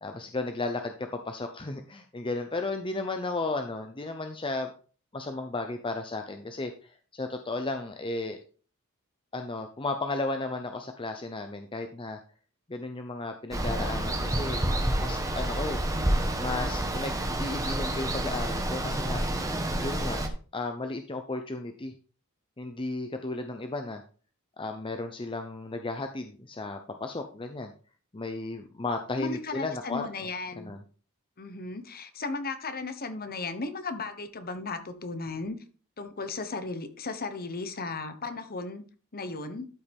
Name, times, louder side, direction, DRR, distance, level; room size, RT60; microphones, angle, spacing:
voice 1, 0.0-4.7 5.1-8.4 9.3-12.2 12.7-14.6 14.9-15.8 16.4-19.2 19.8-20.2 20.5-21.9 22.6-24.0 24.6-27.7 28.1-30.1 30.6-30.8, left 2 dB, 25° left, 0.7 m, -34 dB
Water, 13.5-20.3, right 1 dB, 15° right, 1.3 m, -29 dB
voice 2, 29.2-30.7 31.4-35.6 36.0-38.8 39.1-39.7, left 3 dB, 45° left, 1.2 m, -35 dB
12.5 x 5.7 x 3.5 m
head